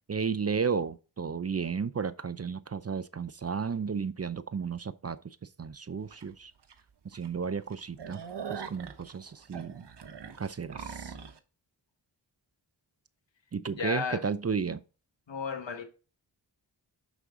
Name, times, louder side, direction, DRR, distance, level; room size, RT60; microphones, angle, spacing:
voice 1, 0.1-5.2 5.6-6.5 7.1-8.2 8.5-9.8 10.4-11.1 13.5-14.8, right 6 dB, 35° right, 0.5 m, -33 dB
sound 1, 6.1-6.2 6.7-6.8 7.1-7.3 7.6-11.4, right 7 dB, 60° right, 1.0 m, -42 dB
voice 2, 13.8-14.2 15.3-15.8, left 5 dB, 70° left, 1.6 m, -33 dB
6.4 x 6.2 x 3.7 m
cardioid pair, 50°, 46 cm